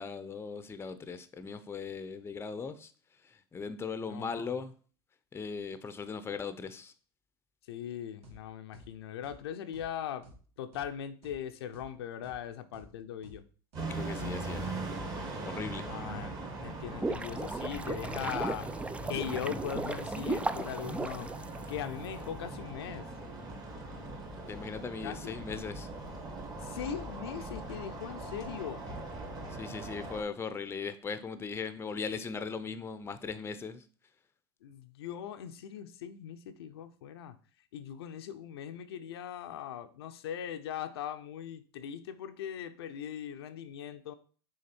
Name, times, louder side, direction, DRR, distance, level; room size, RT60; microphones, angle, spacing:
voice 1, 0.0-2.9 3.2-4.7 5.3-6.9 13.9-14.7 15.4-15.9 24.5-25.9 29.5-33.8, left 5 dB, 20° left, 0.7 m, -39 dB
voice 2, 4.1-4.5 7.7-10.3 10.6-13.4 15.9-18.7 19.1-21.3 21.7-23.1 25.0-25.3 26.6-28.8 34.6-37.4 37.7-44.1, left 9 dB, 80° left, 0.6 m, -40 dB
sound 1, 8.2-8.4 8.7-8.9 9.2-9.4 9.7-9.9 10.2-10.4 10.7-10.9 11.2-11.4 11.7-11.9 12.2-12.4 12.7-12.9 13.2-13.4 13.7-13.9 14.2-14.4 14.7-14.9 15.2-15.4, right 1 dB, 55° right, 2.1 m, -53 dB
sound 2, 13.7-30.2, right 2 dB, 30° right, 2.0 m, -41 dB
sound 3, 16.6-22.0, right 3 dB, 10° right, 0.3 m, -36 dB
6.3 x 3.5 x 4.4 m
hypercardioid pair, 90°, 13 cm